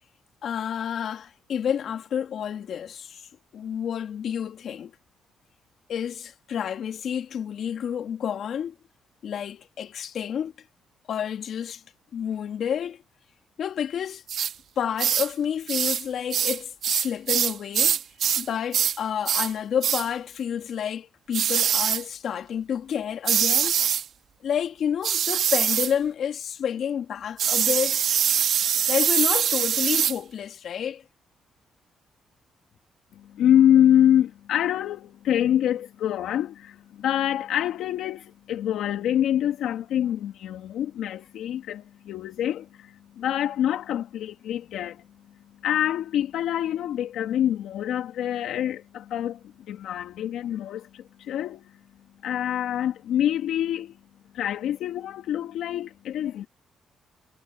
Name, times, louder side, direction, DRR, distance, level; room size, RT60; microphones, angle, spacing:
voice 1, 0.4-4.9 5.9-8.8 9.2-10.5 11.1-11.8 12.1-13.0 13.6-14.2 14.8-18.0 18.4-23.7 24.4-28.0 28.9-31.0, left 8 dB, 65° left, 2.6 m, -29 dB
sound 1, 14.3-14.5 15.0-15.3 15.7-16.0 16.3-18.5 18.7-19.0 19.2-19.5 19.8-20.1 21.3-22.0 23.2-24.0 25.0-25.9 27.4-30.2, right 9 dB, 65° right, 2.3 m, -23 dB
voice 2, 33.2-45.0 45.6-51.7 52.2-54.0 54.3-56.5, left 10 dB, 80° left, 2.1 m, -25 dB
cardioid pair, 90°, 0 cm